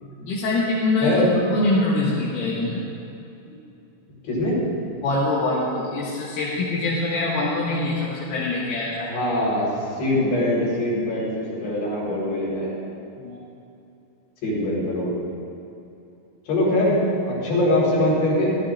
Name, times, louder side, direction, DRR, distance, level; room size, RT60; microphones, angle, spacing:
voice 1, 0.0-2.9 5.0-9.1 13.2-13.4, left 2 dB, 75° left, -7 dB, 4.5 m, -24 dB
voice 2, 4.2-4.5 9.1-12.7 14.4-15.2 16.5-17.0 17.3-18.6, left 1 dB, 55° left, -5 dB, 6.5 m, -22 dB
26.0 x 16.0 x 2.6 m, 2.8 s
omnidirectional pair, 5.9 m